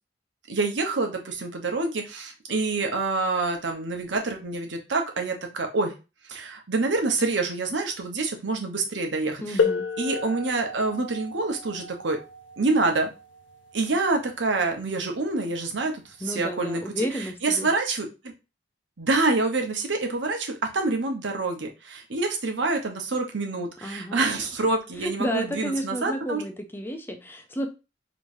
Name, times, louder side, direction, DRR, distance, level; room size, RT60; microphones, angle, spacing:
voice 1, 0.5-5.9 6.3-9.6 10.0-12.2 12.6-13.1 13.7-15.9 16.2-18.1 19.0-26.4, right 3 dB, 75° right, 3 dB, 1.0 m, -27 dB
voice 2, 9.4-9.8 16.2-17.7 23.8-24.3 25.0-27.7, equal, 10° left, 5 dB, 0.5 m, -31 dB
sound 1, 9.6-15.0 16.1-16.2 17.0-17.2, left 5 dB, 80° left, 0.6 m, -32 dB
4.9 x 3.2 x 2.6 m, 0.29 s
head